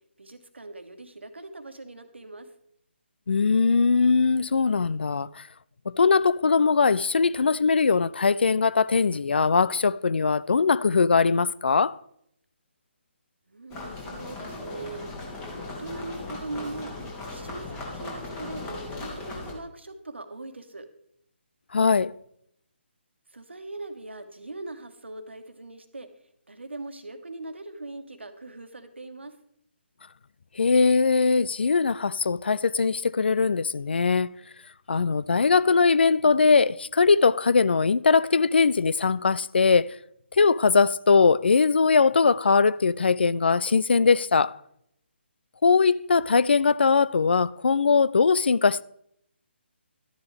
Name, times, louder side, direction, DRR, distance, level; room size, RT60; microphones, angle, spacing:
voice 1, 0.2-2.5 13.5-15.1 15.6-16.9 17.3-20.9 23.3-26.1 26.5-29.4, right 2 dB, 70° right, 1.4 m, -40 dB
voice 2, 3.3-5.5 5.9-12.0 21.7-22.1 30.6-34.3 34.9-40.0 40.3-44.6 45.6-48.8, left 5 dB, 60° left, 0.4 m, -21 dB
sound 1, 13.7-19.5, left 2 dB, 20° left, 2.4 m, -37 dB
12.5 x 10.5 x 3.4 m
figure-of-eight pair, 140°, 6 cm